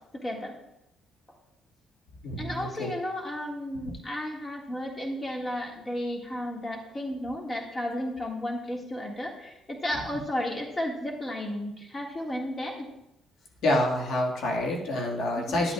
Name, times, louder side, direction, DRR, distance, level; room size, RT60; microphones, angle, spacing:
voice 1, 0.2-0.5 2.4-12.9 15.4-15.6, left 1 dB, 25° left, 0 dB, 1.7 m, -33 dB
voice 2, 2.2-2.9 9.9-10.0 13.6-15.7, left 1 dB, 75° left, -1 dB, 1.7 m, -27 dB
12.5 x 8.5 x 2.3 m, 0.87 s
cardioid pair, 100°, 0 cm